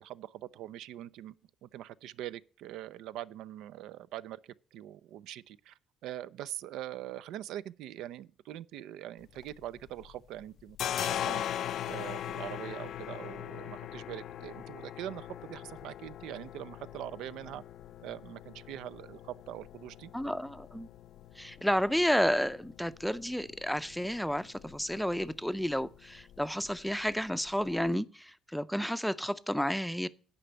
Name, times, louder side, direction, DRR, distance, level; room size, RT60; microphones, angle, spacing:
voice 1, 0.0-1.3 1.6-17.6 18.0-20.1, right 12 dB, 85° right, 0.4 m, -43 dB
sound 1, 9.2-10.1 10.4-27.9, left 11 dB, 65° left, 0.4 m, -41 dB
voice 2, 20.1-20.9 21.4-30.1, equal, ahead, 0.5 m, -31 dB
10.0 x 5.2 x 8.0 m
cardioid pair, 115°, 0 cm